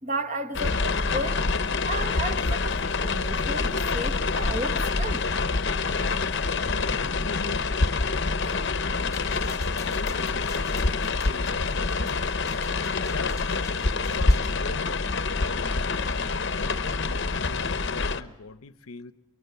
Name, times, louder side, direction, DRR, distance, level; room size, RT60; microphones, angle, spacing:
voice 1, 0.0-1.4 1.9-5.2, right 1 dB, 35° right, 1.6 m, -33 dB
sound 1, 0.5-18.2, left 3 dB, 50° left, 0.8 m, -26 dB
voice 2, 6.7-9.5 10.0-12.4 12.9-13.5 14.0-16.0 16.4-19.1, left 4 dB, 80° left, 0.8 m, -41 dB
sound 2, 9.0-14.5, left 4 dB, 15° left, 1.0 m, -47 dB
24.5 x 23.0 x 7.0 m
head